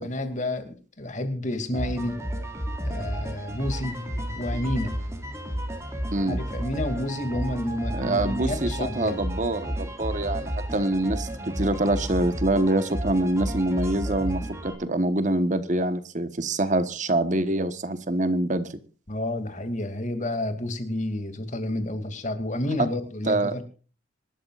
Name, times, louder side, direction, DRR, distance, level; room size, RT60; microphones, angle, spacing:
voice 1, 0.0-2.2 2.8-4.9 6.2-9.2 19.1-23.6, left 1 dB, 40° left, 8 dB, 2.5 m, -30 dB
sound 1, 1.7-14.8, equal, 15° right, 3.0 m, -32 dB
voice 2, 6.1-6.4 7.9-18.7 23.3-23.6, right 1 dB, 40° right, 11 dB, 1.2 m, -25 dB
26.0 x 12.5 x 2.5 m, 0.37 s
head